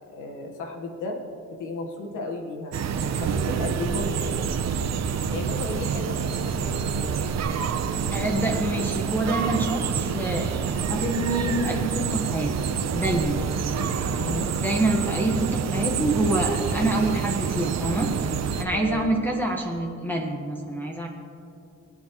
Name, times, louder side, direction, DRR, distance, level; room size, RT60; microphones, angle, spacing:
voice 1, 0.1-1.2 1.6-4.5 5.3-7.2 13.6-14.5 18.7-19.2, left 2 dB, 85° left, 2 dB, 1.5 m, -34 dB
sound 1, 2.7-18.6, right 6 dB, 60° right, 1.0 m, -27 dB
voice 2, 8.1-12.5 12.9-13.4 14.6-18.1 18.6-21.1, right 1 dB, 5° left, 0 dB, 1.4 m, -26 dB
24.0 x 8.5 x 3.1 m, 2.7 s
cardioid pair, 90°, 30 cm